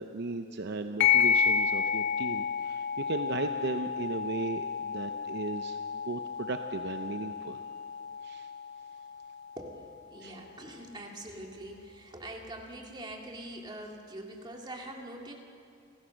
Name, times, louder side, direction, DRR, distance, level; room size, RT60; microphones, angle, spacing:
voice 1, 0.0-7.6 8.2-8.5 10.2-10.4, right 3 dB, 55° right, 7 dB, 0.7 m, -36 dB
sound 1, 1.0-10.0, left 6 dB, 55° left, 1.4 m, -31 dB
voice 2, 9.6-15.3, right 1 dB, 20° right, 0 dB, 2.3 m, -43 dB
30.0 x 14.5 x 6.4 m, 2.4 s
head